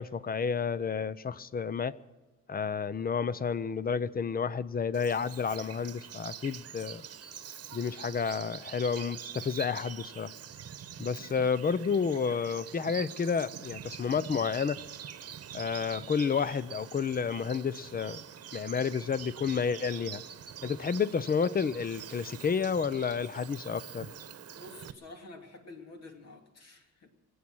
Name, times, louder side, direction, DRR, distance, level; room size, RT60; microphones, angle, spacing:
voice 1, 0.0-1.9 2.5-7.0 7.7-10.3 11.0-14.8 15.5-18.2 18.5-20.2 20.6-24.1, left 6 dB, 30° left, 0.7 m, -30 dB
Bird vocalization bird call bird song, 4.9-24.9, right 9 dB, 50° right, 1.1 m, -45 dB
voice 2, 24.6-27.1, left 2 dB, 55° left, 2.9 m, -49 dB
25.0 x 8.7 x 6.3 m
cardioid pair, 90°, 30 cm